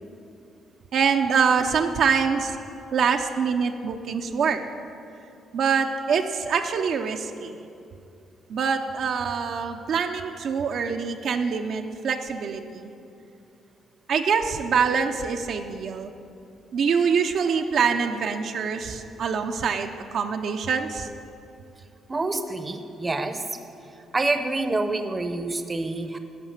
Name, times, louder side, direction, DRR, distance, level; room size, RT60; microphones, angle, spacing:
voice 1, 0.9-2.6 2.9-4.6 5.5-7.6 8.5-12.9 14.1-16.1 16.7-21.1, right 6 dB, 65° right, 4 dB, 0.6 m, -25 dB
voice 2, 22.1-23.4 24.1-26.2, right 2 dB, 25° right, 8 dB, 0.7 m, -27 dB
11.0 x 5.8 x 7.2 m, 2.6 s
cardioid pair, 90°, 0 cm